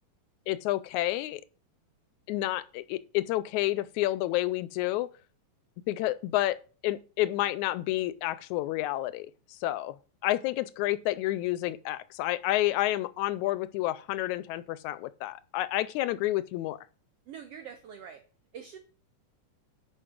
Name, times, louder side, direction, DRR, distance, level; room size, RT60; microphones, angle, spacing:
voice 1, 0.5-1.4 2.3-5.1 5.9-6.6 6.8-10.0 10.2-16.8, left 16 dB, 80° left, 1.8 m, -29 dB
voice 2, 17.3-18.2 18.5-18.8, right 7 dB, 70° right, 1.6 m, -44 dB
10.0 x 5.3 x 6.0 m
omnidirectional pair, 3.7 m